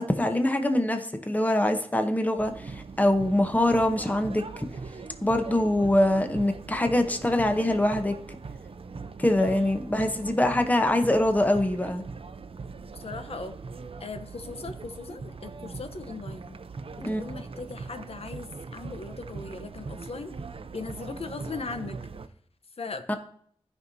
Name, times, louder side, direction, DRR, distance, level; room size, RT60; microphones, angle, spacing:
voice 1, 0.0-4.7 5.2-8.1 9.2-12.0 17.0-17.2 23.1-23.2, left 1 dB, 15° left, 6 dB, 0.9 m, -24 dB
sound 1, 2.4-22.3, right 4 dB, 65° right, 0.5 m, -41 dB
voice 2, 9.4-9.8 12.9-13.5 14.0-16.6 17.2-20.3 20.7-22.0 22.8-23.2, left 4 dB, 75° left, 8 dB, 0.8 m, -38 dB
15.5 x 5.4 x 2.7 m, 0.62 s
wide cardioid pair, 80°, 10 cm